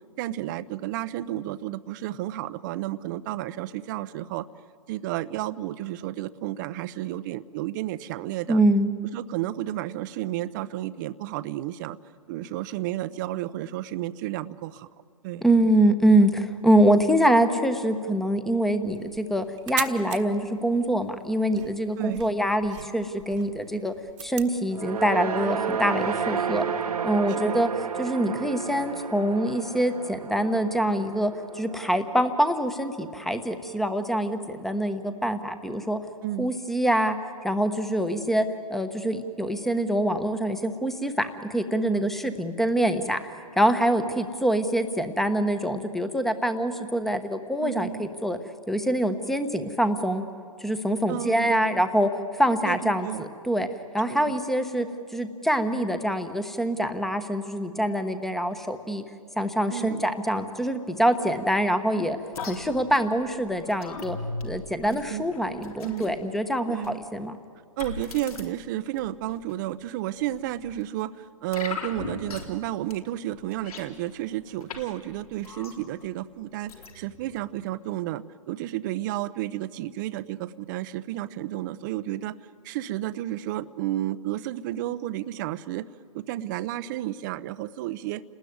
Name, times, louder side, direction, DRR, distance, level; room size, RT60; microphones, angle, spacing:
voice 1, 0.2-4.5 4.9-8.6 9.1-12.0 12.3-14.9 15.2-15.5 22.0-22.3 27.3-27.6 36.2-36.5 41.9-42.2 47.6-48.0 51.1-51.7 52.7-53.2 54.1-54.3 59.7-60.0 64.8-65.2 65.8-66.1 66.7-67.0 67.8-82.4 82.6-85.9 86.1-88.2, right 14 dB, 30° right, 15 dB, 0.7 m, -32 dB
voice 2, 8.5-8.9 15.4-23.9 24.2-26.6 27.0-27.7 28.0-36.0 36.4-37.2 37.4-43.2 43.6-48.4 48.7-50.3 50.6-53.7 53.9-59.0 59.4-62.2 62.4-64.2 64.4-67.3, right 1 dB, ahead, 9 dB, 1.1 m, -25 dB
sound 1, 18.8-24.6, right 11 dB, 50° right, 1.4 m, -40 dB
sound 2, 24.7-33.1, right 7 dB, 85° right, 1.5 m, -32 dB
sound 3, 62.3-66.2 66.8-67.0 67.8-68.4 68.9-69.5 70.3-70.8 71.5-72.6 72.9-73.0 73.3-74.8 75.1-76.1 76.7-77.4 77.7-77.8, left 4 dB, 70° left, 3.9 m, -39 dB
29.5 x 20.0 x 9.5 m, 2.3 s
hypercardioid pair, 145°, 19 cm